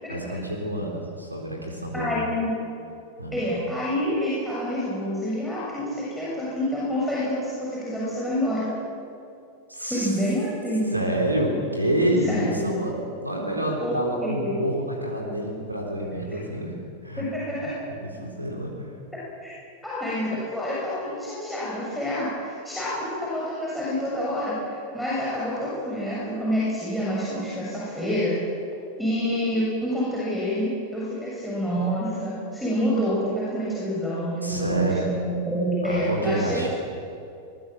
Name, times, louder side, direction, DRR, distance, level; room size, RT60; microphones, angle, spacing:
voice 1, 0.1-2.2 3.2-3.4 9.7-10.1 10.9-16.8 17.0-17.2 17.6-18.9 34.4-35.1 35.8-36.7, right 1 dB, 85° right, -1 dB, 3.8 m, -28 dB
voice 2, 1.9-2.5 3.3-8.7 9.8-10.9 12.2-12.6 13.8-14.6 17.2-17.7 19.4-19.5 19.8-24.5 24.9-28.4 29.0-36.7, equal, ahead, -8 dB, 7.3 m, -27 dB
23.0 x 21.5 x 7.5 m, 2.5 s
figure-of-eight pair, 90°, 0 cm